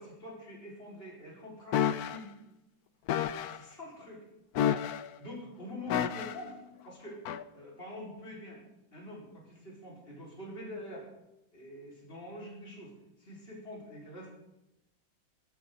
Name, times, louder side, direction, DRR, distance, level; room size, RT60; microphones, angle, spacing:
voice 1, 0.0-2.3 3.5-4.2 5.2-6.6 6.8-7.2 7.5-8.6 8.9-11.1 11.5-12.9 13.2-14.3, left 1 dB, 30° left, -5 dB, 5.0 m, -45 dB
sound 1, 1.7-2.2 3.1-3.6 4.6-5.2 5.9-6.5 7.3-7.4, left 9 dB, 65° left, 1.0 m, -30 dB
21.0 x 13.5 x 3.9 m, 0.93 s
omnidirectional pair, 2.1 m